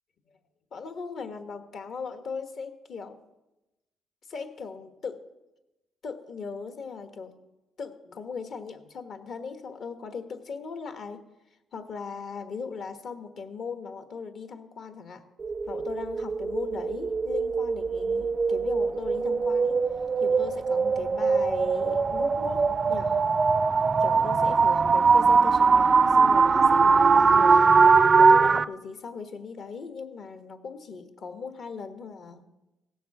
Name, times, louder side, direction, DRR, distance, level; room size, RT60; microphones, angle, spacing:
voice 1, 0.7-3.2 4.3-5.2 6.0-7.3 7.8-11.2 11.7-15.2 15.7-19.8 20.2-23.3 24.0-27.8 28.2-32.4, left 5 dB, 60° left, 8 dB, 1.3 m, -38 dB
sound 1, 15.4-28.6, right 5 dB, 35° right, 0.3 m, -21 dB
16.5 x 7.1 x 5.9 m, 0.99 s
cardioid pair, 90°, 0 cm